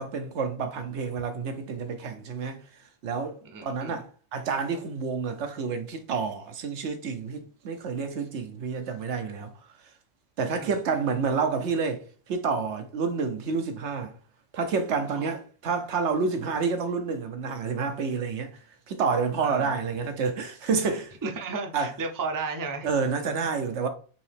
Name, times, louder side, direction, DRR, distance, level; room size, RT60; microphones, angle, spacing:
voice 1, 0.0-2.6 3.0-9.5 10.4-12.0 12.3-14.1 14.5-18.5 18.9-21.1 21.7-21.9 22.8-23.9, right 5 dB, 85° right, 1.1 m, -29 dB
voice 2, 3.4-4.0 10.6-10.7 15.2-15.3 19.4-19.8 21.2-22.9, right 4 dB, 25° right, 0.4 m, -33 dB
5.3 x 2.8 x 3.3 m
omnidirectional pair, 1.1 m